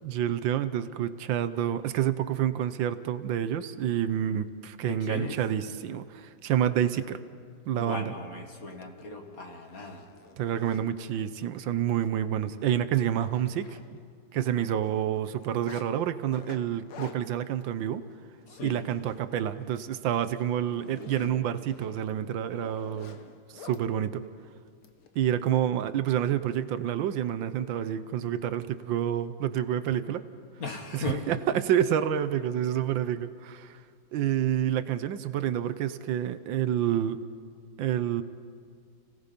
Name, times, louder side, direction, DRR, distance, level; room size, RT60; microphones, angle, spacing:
voice 1, 0.0-7.2 7.7-8.1 10.4-14.0 14.3-18.0 18.6-23.2 23.5-24.2 25.1-30.2 30.9-33.8 34.1-37.2 37.8-38.2, right 10 dB, 70° right, 12 dB, 1.4 m, -28 dB
voice 2, 4.8-5.4 7.7-10.1 18.5-18.9 20.8-21.6 30.6-31.2, left 3 dB, 45° left, 3 dB, 2.2 m, -38 dB
Zipper (clothing), 9.0-9.1 9.5-10.8 11.4-11.6 11.9-12.1 12.4-12.5 12.9-14.2 14.5-15.9 16.3-19.2 19.6-19.8 20.2-23.8 24.8-25.5, left 6 dB, 85° left, 2.0 m, -50 dB
30.0 x 17.5 x 5.3 m, 2.1 s
omnidirectional pair, 2.2 m